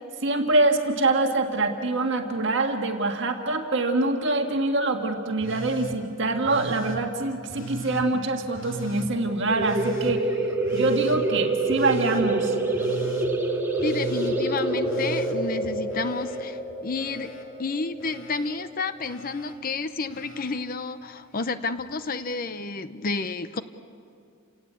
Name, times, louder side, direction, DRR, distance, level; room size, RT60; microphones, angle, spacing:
voice 1, 0.2-10.3 10.7-12.5, right 2 dB, 60° right, 3 dB, 1.7 m, -25 dB
Telephone, 5.4-6.0 6.4-7.0 7.5-8.0 8.6-9.1 9.6-10.1 10.6-11.2 11.7-12.2 12.7-13.3 13.8-14.3 14.8-16.4 16.7-17.4 18.0-18.5 19.0-19.5 20.1-20.6 21.8-21.9, right 2 dB, 70° left, 2.8 m, -38 dB
sound 1, 9.5-18.8, right 2 dB, 10° right, 1.9 m, -27 dB
voice 2, 13.8-17.3 17.6-23.6, left 3 dB, 45° left, 11 dB, 0.7 m, -30 dB
29.5 x 17.5 x 8.4 m, 2.4 s
head